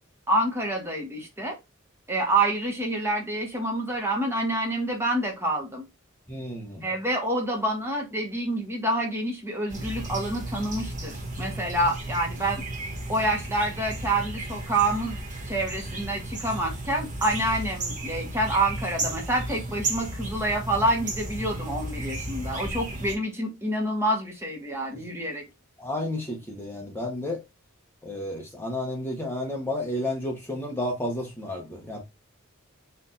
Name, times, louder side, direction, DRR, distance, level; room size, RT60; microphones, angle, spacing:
voice 1, 0.3-1.6 2.1-5.8 6.8-12.6 13.1-25.4, right 1 dB, 10° right, 1.2 m, -27 dB
voice 2, 6.3-6.9 11.6-11.7 25.8-27.4 28.0-32.0, left 1 dB, 10° left, 0.9 m, -31 dB
sound 1, 9.7-23.1, right 2 dB, 40° right, 1.4 m, -34 dB
4.4 x 2.6 x 3.7 m
head